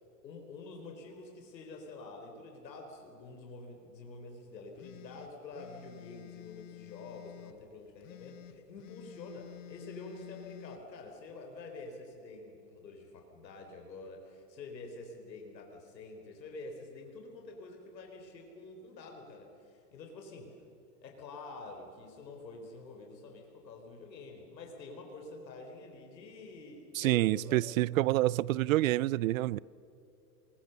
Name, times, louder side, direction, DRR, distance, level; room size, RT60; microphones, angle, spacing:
voice 1, 0.2-20.6 21.0-27.7, left 3 dB, 90° left, 4.1 m, -48 dB
sound 1, 4.8-7.6 8.0-10.8, left 14 dB, 50° left, 1.4 m, -50 dB
voice 2, 27.0-29.6, right 16 dB, 55° right, 0.5 m, -27 dB
25.5 x 22.0 x 6.7 m
hypercardioid pair, 140°, 49 cm